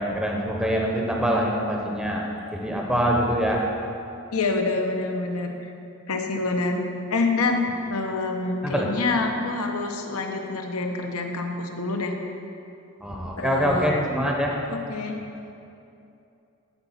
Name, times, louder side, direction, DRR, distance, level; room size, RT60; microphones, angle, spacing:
voice 1, 0.0-2.2 2.5-3.6 8.6-8.9 13.0-14.6, equal, 5° right, -1 dB, 0.7 m, -24 dB
voice 2, 4.3-5.7 6.1-6.8 7.1-12.1 13.4-14.0 14.7-15.2, left 3 dB, 90° left, 3 dB, 0.9 m, -26 dB
11.5 x 4.1 x 5.7 m, 2.7 s
head